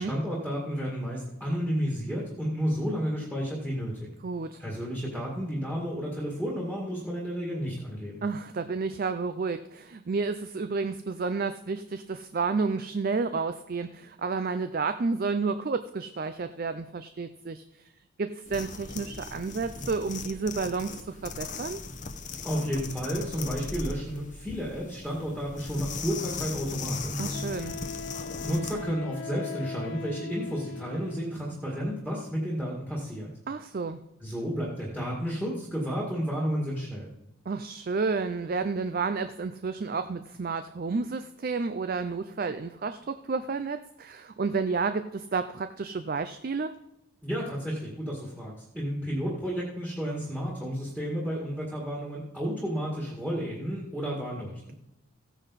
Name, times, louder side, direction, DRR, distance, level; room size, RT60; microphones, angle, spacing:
voice 1, 0.0-4.1 4.6-8.2 22.4-27.8 28.1-33.3 34.2-37.1 47.2-54.7, equal, 5° right, -3 dB, 2.0 m, -32 dB
voice 2, 4.2-4.6 8.2-17.8 18.2-21.8 27.2-27.8 33.5-34.0 37.5-46.7, right 4 dB, 45° right, 10 dB, 0.4 m, -31 dB
sound 1, 18.5-28.8, left 4 dB, 35° left, 0.8 m, -38 dB
Wind instrument woodwind instrument, 27.3-31.4, left 5 dB, 65° left, 0.5 m, -40 dB
15.5 x 9.1 x 4.1 m, 0.93 s
head